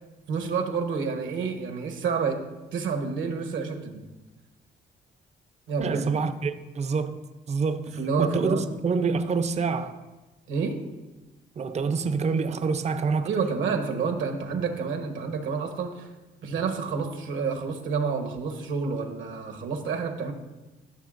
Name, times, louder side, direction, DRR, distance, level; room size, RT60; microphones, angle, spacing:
voice 1, 0.3-2.4 2.7-4.0 5.7-6.1 7.9-8.7 10.5-10.8 13.2-16.1 16.4-20.3, right 5 dB, 75° right, 1.1 m, -29 dB
voice 2, 5.8-10.0 11.6-13.3, right 4 dB, 35° right, 0.5 m, -27 dB
13.0 x 6.2 x 2.5 m
cardioid pair, 90°, 20 cm